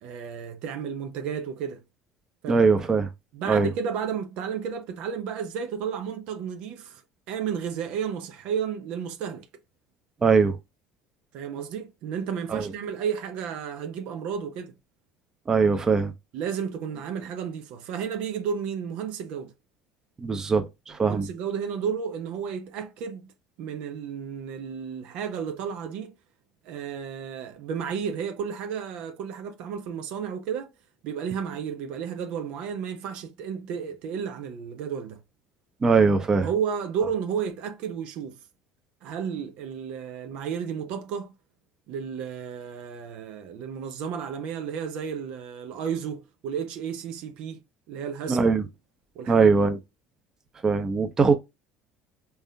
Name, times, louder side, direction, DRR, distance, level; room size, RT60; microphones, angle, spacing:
voice 1, 0.0-1.8 2.4-2.6 3.3-7.0 7.3-9.4 11.3-14.7 16.3-19.5 21.0-23.3 23.6-26.1 26.6-30.7 31.0-35.2 36.4-38.4 39.0-41.3 41.9-48.4 49.1-49.5, right 7 dB, 60° right, 0.8 m, -32 dB
voice 2, 2.5-3.1 3.5-3.7 10.2-10.6 12.5-12.7 15.5-16.1 20.2-21.3 35.8-36.5 48.3-48.6 49.3-49.8 50.6-51.4, right 5 dB, 30° right, 0.8 m, -21 dB
4.3 x 3.5 x 2.2 m
hypercardioid pair, 65°, 2 cm